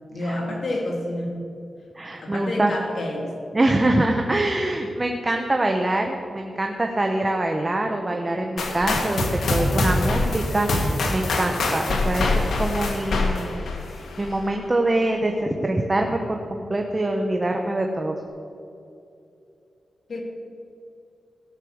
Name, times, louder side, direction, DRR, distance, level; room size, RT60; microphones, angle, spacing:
voice 1, 0.1-1.5 2.2-3.4 20.1-20.2, left 1 dB, 60° left, 0 dB, 2.7 m, -29 dB
voice 2, 2.0-2.7 3.5-13.6 13.9-18.1, right 1 dB, 25° right, 2 dB, 1.0 m, -24 dB
sound 1, 8.6-14.4, left 2 dB, 85° left, 1.5 m, -24 dB
16.5 x 6.6 x 6.5 m, 2.7 s
wide cardioid pair, 100°, 0 cm